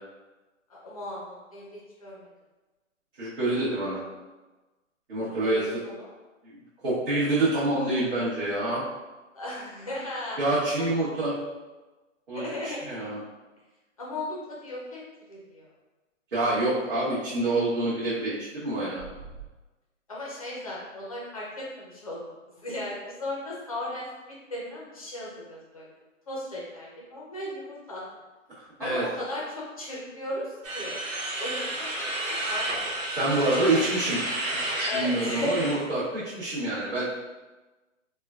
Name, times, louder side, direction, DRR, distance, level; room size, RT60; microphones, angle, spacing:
voice 1, 0.8-2.3 5.2-6.1 9.3-10.4 10.8-10.9 12.4-12.8 14.0-15.0 15.3-15.7 20.1-25.9 26.3-28.0 28.8-31.0 31.4-31.9 32.5-33.0 34.8-35.9, left 1 dB, 30° left, -5 dB, 0.6 m, -36 dB
voice 2, 3.2-4.0 5.1-5.8 6.4-8.8 10.4-11.4 12.3-13.2 16.3-19.0 28.5-29.0 33.2-34.2 34.9-37.0, right 2 dB, 50° right, -12 dB, 1.1 m, -27 dB
sound 1, 19.0-19.5, right 6 dB, 15° right, 0.7 m, -43 dB
sound 2, 30.6-35.7, right 1 dB, 85° right, 1.1 m, -31 dB
3.6 x 2.2 x 2.3 m, 1.2 s
hypercardioid pair, 165°, 39 cm